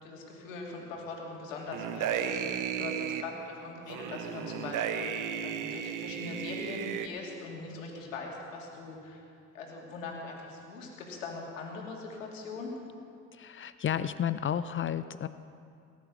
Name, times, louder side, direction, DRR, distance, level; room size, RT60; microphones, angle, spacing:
voice 1, 0.0-9.2 9.5-12.7, left 3 dB, 85° left, -1 dB, 2.7 m, -41 dB
sound 1, 1.7-3.2 3.9-7.1, right 8 dB, 55° right, 1.1 m, -34 dB
voice 2, 13.3-15.3, left 9 dB, 30° left, 14 dB, 0.6 m, -32 dB
18.5 x 10.5 x 6.4 m, 2.5 s
hypercardioid pair, 60°, 38 cm